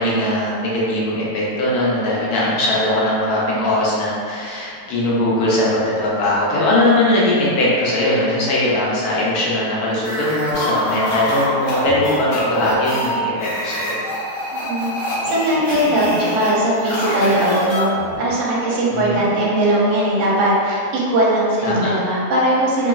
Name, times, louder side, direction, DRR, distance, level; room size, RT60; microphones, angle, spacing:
voice 1, 0.0-13.9 18.9-19.2 21.6-21.9, left 1 dB, 75° left, -6 dB, 1.2 m, -20 dB
sound 1, 10.0-18.3, equal, 60° left, 1.1 m, -25 dB
voice 2, 14.5-14.9 15.2-17.8 18.2-20.8 21.1-22.9, right 1 dB, 60° right, -6 dB, 0.9 m, -19 dB
3.0 x 2.4 x 2.3 m, 2.2 s
omnidirectional pair, 1.7 m